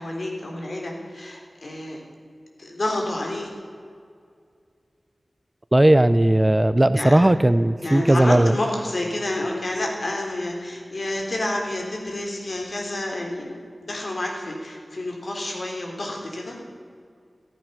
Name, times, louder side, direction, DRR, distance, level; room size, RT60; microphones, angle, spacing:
voice 1, 0.0-2.0 2.6-3.5 6.9-7.2 7.8-16.6, left 1 dB, 60° left, 1 dB, 3.5 m, -29 dB
voice 2, 5.7-8.5, right 1 dB, 20° right, 14 dB, 0.5 m, -17 dB
14.5 x 13.5 x 6.7 m, 2.2 s
wide cardioid pair, 75°, 0 cm